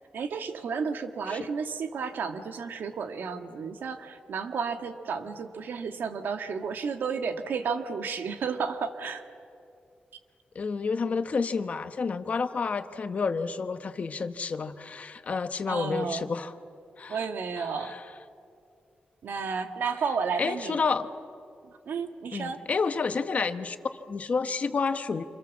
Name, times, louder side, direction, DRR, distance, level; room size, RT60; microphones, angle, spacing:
voice 1, 0.1-9.2 15.7-16.2 17.1-17.9 19.2-20.8 21.7-22.6, right 5 dB, 85° right, 7 dB, 1.7 m, -32 dB
voice 2, 10.5-16.5 17.0-17.3 17.6-18.0 20.4-21.1 22.3-25.2, left 5 dB, 45° left, 9 dB, 1.1 m, -30 dB
28.0 x 27.0 x 7.3 m, 2.5 s
wide cardioid pair, 140°, 3 cm